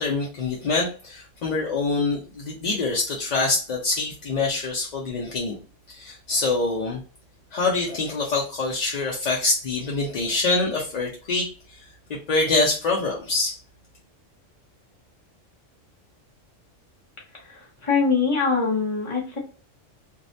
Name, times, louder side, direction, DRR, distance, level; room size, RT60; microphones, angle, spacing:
voice 1, 0.0-5.6 5.9-7.0 7.5-11.5 12.1-13.5, left 3 dB, 60° left, -3 dB, 0.4 m, -25 dB
voice 2, 17.5-19.4, left 5 dB, 30° left, -2 dB, 0.9 m, -23 dB
2.5 x 2.0 x 2.6 m, 0.36 s
omnidirectional pair, 1.3 m